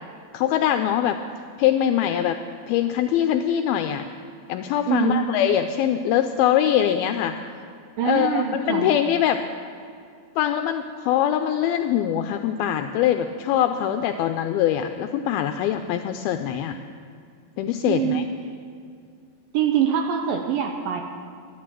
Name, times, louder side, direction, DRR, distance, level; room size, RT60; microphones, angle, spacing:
voice 1, 0.3-1.2 1.6-2.4 2.7-4.1 4.5-7.4 8.0-9.4 10.4-16.8 17.6-18.2, left 10 dB, 85° left, 7 dB, 2.2 m, -23 dB
voice 2, 4.9-5.3 8.0-8.9 17.8-18.3 19.5-21.0, right 8 dB, 80° right, 4 dB, 2.1 m, -24 dB
12.0 x 11.0 x 7.5 m, 2.3 s
omnidirectional pair, 4.8 m